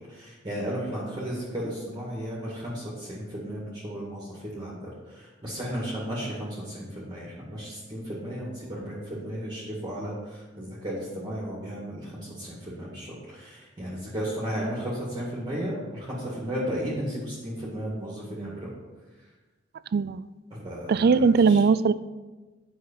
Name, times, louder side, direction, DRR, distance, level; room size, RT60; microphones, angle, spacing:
voice 1, 0.0-18.7 20.5-21.6, equal, 25° right, -6 dB, 2.0 m, -34 dB
voice 2, 19.9-20.2 20.9-21.9, right 5 dB, 55° right, 16 dB, 0.3 m, -20 dB
9.7 x 5.6 x 5.5 m, 1.2 s
head